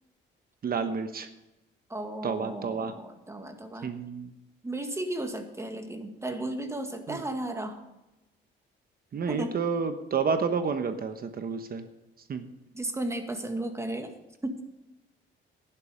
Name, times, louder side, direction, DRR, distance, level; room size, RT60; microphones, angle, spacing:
voice 1, 0.6-1.3 2.2-2.9 3.8-4.3 7.1-7.2 9.1-11.8 12.3-12.4, right 5 dB, 50° right, 9 dB, 1.1 m, -30 dB
voice 2, 1.9-4.0 4.6-7.8 9.3-9.6 12.7-14.2 14.4-14.6, right 1 dB, 15° right, 6 dB, 1.9 m, -34 dB
11.5 x 10.5 x 5.1 m, 0.97 s
cardioid pair, 90°, 20 cm